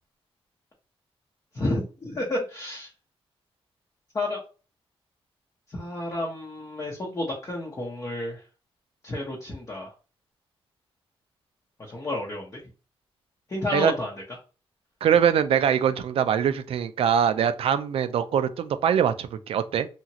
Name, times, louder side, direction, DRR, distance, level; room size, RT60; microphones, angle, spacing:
voice 1, 1.5-2.9 4.1-4.4 5.7-8.4 9.0-9.9 11.8-12.6 13.5-14.1, left 2 dB, 35° left, 0.9 m, -31 dB
voice 2, 15.0-19.9, right 8 dB, 65° right, 0.4 m, -23 dB
2.9 x 2.4 x 2.8 m
cardioid pair, 100°, 10 cm